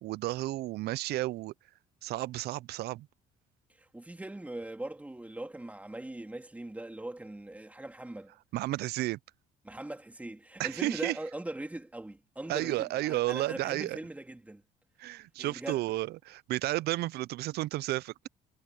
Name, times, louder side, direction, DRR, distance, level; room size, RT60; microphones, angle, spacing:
voice 1, 0.0-1.5 2.0-3.1 8.5-9.2 10.6-11.2 12.5-14.0 15.0-18.3, right 17 dB, 70° right, 0.5 m, -32 dB
voice 2, 3.8-8.3 9.6-14.6 15.4-15.8, right 1 dB, 10° right, 3.0 m, -41 dB
cardioid pair, 110°, 17 cm